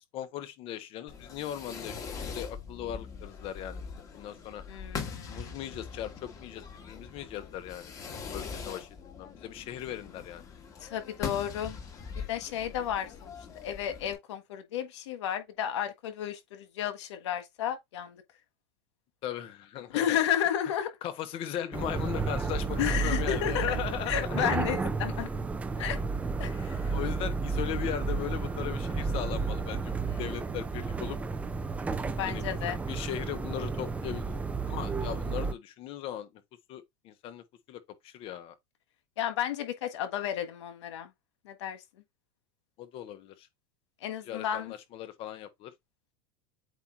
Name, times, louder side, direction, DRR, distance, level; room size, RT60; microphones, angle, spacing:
voice 1, 0.1-3.9 4.1-4.6 5.3-7.9 8.3-10.4 19.2-20.2 21.0-24.5 26.9-31.2 32.2-34.4 34.7-36.3 36.7-38.5 42.8-43.5 44.3-45.7, left 11 dB, 40° left, 1.2 m, -38 dB
Fireworks, 1.1-14.1, left 5 dB, 25° left, 1.9 m, -42 dB
voice 2, 4.7-5.6 10.8-11.8 12.1-13.3 13.6-18.2 19.9-20.9 22.8-23.7 24.1-25.3 25.8-26.0 26.4-26.9 30.0-30.3 32.2-32.8 39.2-41.1 41.4-41.8 44.0-44.7, left 10 dB, 85° left, 1.6 m, -32 dB
sound 1, 21.7-35.5, right 4 dB, 10° right, 0.6 m, -32 dB
8.1 x 2.8 x 4.6 m
supercardioid pair, 145°, 14 cm